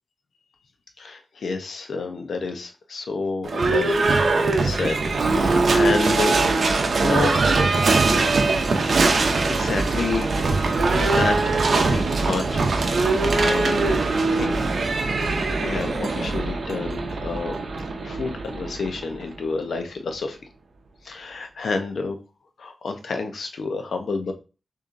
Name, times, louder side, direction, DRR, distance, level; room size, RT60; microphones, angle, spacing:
voice 1, 1.0-4.3 4.6-6.4 7.0-7.4 9.5-13.9 14.3-14.7 15.6-17.6 18.0-20.4 21.0-22.2 22.6-24.3, left 4 dB, 80° left, 5 dB, 0.7 m, -29 dB
Livestock farm animals working animals / Bell, 3.4-19.3, right 3 dB, 60° right, 0.6 m, -21 dB
6.6 x 2.7 x 2.6 m, 0.32 s
wide cardioid pair, 180°, 0 cm